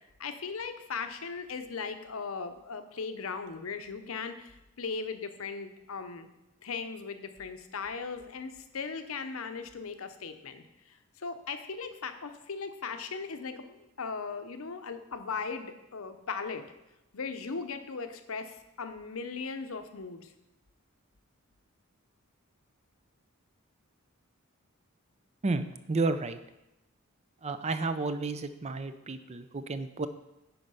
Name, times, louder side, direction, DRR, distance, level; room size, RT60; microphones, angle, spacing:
voice 1, 0.2-6.3 6.6-16.6 17.1-20.3, left 5 dB, 75° left, 8 dB, 0.7 m, -38 dB
voice 2, 25.4-26.4 27.4-30.1, right 3 dB, 30° right, 11 dB, 0.4 m, -31 dB
10.0 x 4.5 x 5.5 m, 0.94 s
head